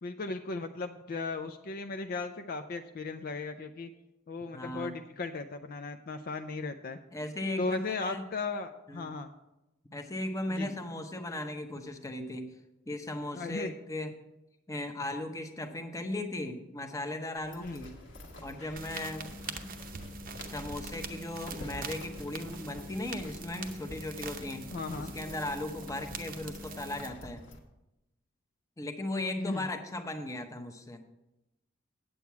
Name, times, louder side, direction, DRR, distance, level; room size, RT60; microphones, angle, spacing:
voice 1, 0.0-3.9 4.3-7.0 7.6-9.3 10.5-10.8 13.3-13.8 17.6-17.8 24.7-25.1 29.4-29.6, left 3 dB, 45° left, 6 dB, 0.4 m, -36 dB
voice 2, 4.5-4.9 7.1-8.2 8.9-9.1 9.9-12.5 12.9-14.1 14.7-17.9 18.4-19.7 20.5-24.6 25.0-27.4 28.8-31.0, left 1 dB, 15° left, 6 dB, 0.8 m, -37 dB
sound 1, 17.3-27.6, left 1 dB, 65° left, 1.5 m, -48 dB
sound 2, 18.8-27.1, right 3 dB, 45° right, 0.7 m, -43 dB
8.8 x 8.4 x 4.6 m, 0.94 s
head